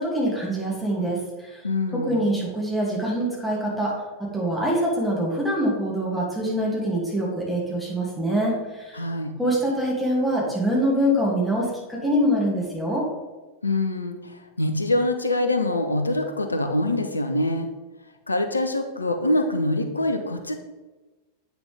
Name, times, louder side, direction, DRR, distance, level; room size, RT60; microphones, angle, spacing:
voice 1, 0.0-1.6 1.9-3.9 4.2-9.0 9.4-13.1, equal, ahead, -4 dB, 2.5 m, -24 dB
voice 2, 1.6-2.2 8.9-9.3 13.6-17.7 18.3-20.6, left 1 dB, 80° left, 6 dB, 0.8 m, -24 dB
8.7 x 6.1 x 3.5 m, 1.2 s
figure-of-eight pair, 90°, 0 cm